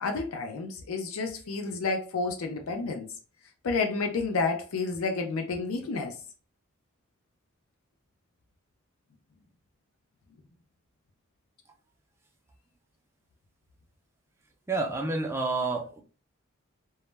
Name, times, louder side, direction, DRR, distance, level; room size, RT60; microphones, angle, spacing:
voice 1, 0.0-3.1 3.6-6.1, left 4 dB, 90° left, 0.4 m, -30 dB
voice 2, 14.7-16.0, right 3 dB, 10° right, 0.3 m, -29 dB
2.1 x 2.1 x 3.1 m
head